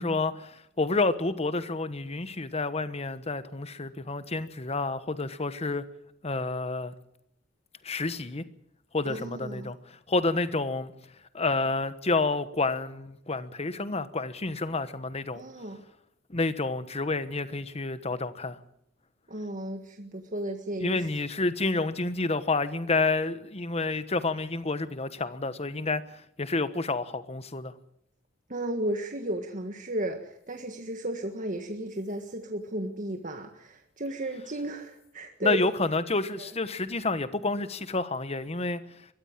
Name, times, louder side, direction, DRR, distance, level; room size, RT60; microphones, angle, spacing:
voice 1, 0.0-5.8 6.2-6.9 7.8-8.4 8.9-10.9 11.3-15.4 16.3-18.6 20.8-27.7 35.4-38.8, left 3 dB, 30° left, 1.2 m, -29 dB
voice 2, 9.1-9.7 15.4-15.8 19.3-21.1 28.5-35.6 36.4-36.5, right 1 dB, 40° right, 1.7 m, -34 dB
22.5 x 15.5 x 8.9 m
head